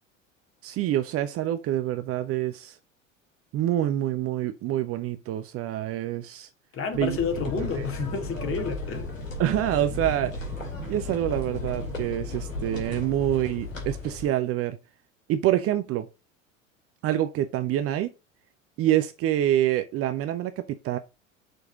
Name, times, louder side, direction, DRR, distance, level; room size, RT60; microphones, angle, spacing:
voice 1, 0.6-2.8 3.5-6.5 6.9-7.2 7.5-7.7 9.4-10.4 10.9-14.8 15.3-16.1 17.0-18.1 18.8-21.0, right 12 dB, 35° right, 0.7 m, -26 dB
voice 2, 6.7-9.2, left 5 dB, 35° left, 2.4 m, -30 dB
sound 1, 6.9-14.3, left 2 dB, 75° left, 2.4 m, -35 dB
6.3 x 4.7 x 6.3 m
figure-of-eight pair, 70°, 40 cm